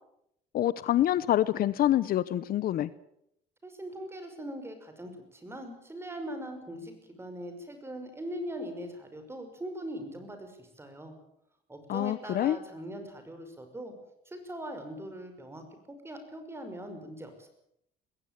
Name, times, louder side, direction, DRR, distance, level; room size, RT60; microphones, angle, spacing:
voice 1, 0.5-2.9 11.9-12.6, left 12 dB, 60° left, 17 dB, 0.9 m, -26 dB
voice 2, 3.6-11.1 11.7-13.9 14.3-15.6 15.9-17.5, equal, 15° right, 7 dB, 5.8 m, -41 dB
21.0 x 16.5 x 9.1 m, 0.76 s
cardioid pair, 110°, 17 cm